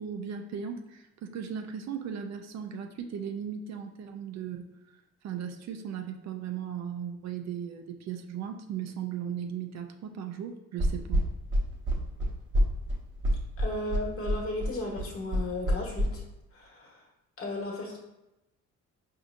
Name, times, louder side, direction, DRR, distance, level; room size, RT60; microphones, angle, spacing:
voice 1, 0.0-4.7 5.2-11.2, right 8 dB, 60° right, 6 dB, 0.5 m, -37 dB
sound 1, 10.8-16.1, equal, 40° right, 1.0 m, -26 dB
voice 2, 13.6-16.2 16.5-17.0 17.4-18.0, left 2 dB, 45° left, -2 dB, 1.3 m, -35 dB
4.8 x 2.7 x 2.6 m, 0.93 s
cardioid pair, 90°, 30 cm